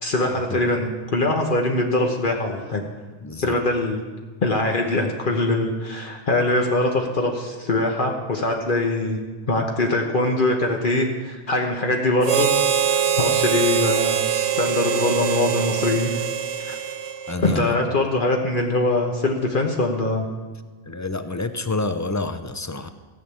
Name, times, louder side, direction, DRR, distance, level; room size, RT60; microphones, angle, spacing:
voice 1, 0.0-2.8 3.4-4.0 4.4-9.2 9.5-12.5 13.2-14.2 14.6-16.1 16.6-16.7 17.4-20.3, left 2 dB, 55° left, 2 dB, 1.3 m, -22 dB
voice 2, 3.2-3.6 17.3-17.9 20.8-22.9, left 3 dB, 20° left, 10 dB, 0.6 m, -28 dB
Harmonica, 12.2-17.7, right 8 dB, 55° right, 0.3 m, -23 dB
16.0 x 6.3 x 8.6 m, 1.4 s
omnidirectional pair, 1.0 m